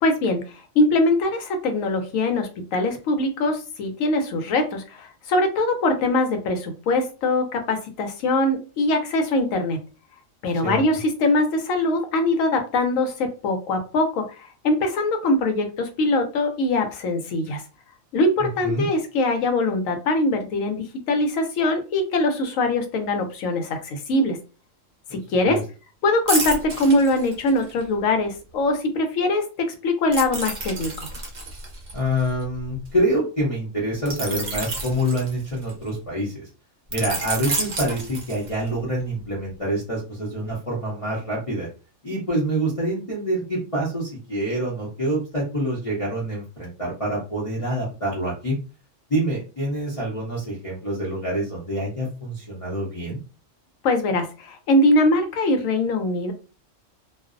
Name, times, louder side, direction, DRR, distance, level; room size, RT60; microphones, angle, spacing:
voice 1, 0.0-9.8 10.4-17.6 18.1-24.4 25.1-25.6 26.0-31.1 53.8-56.3, left 2 dB, 80° left, 5 dB, 1.0 m, -22 dB
voice 2, 18.4-18.9 25.4-25.6 31.9-36.5 36.9-41.7 42.0-48.6 49.1-53.2, right 1 dB, 35° left, -7 dB, 0.6 m, -26 dB
sound 1, 26.3-27.8 30.1-32.9 34.1-35.9 36.9-38.8 39.2-39.4, right 3 dB, 45° right, 0.6 m, -30 dB
2.5 x 2.0 x 2.4 m, 0.34 s
omnidirectional pair, 1.4 m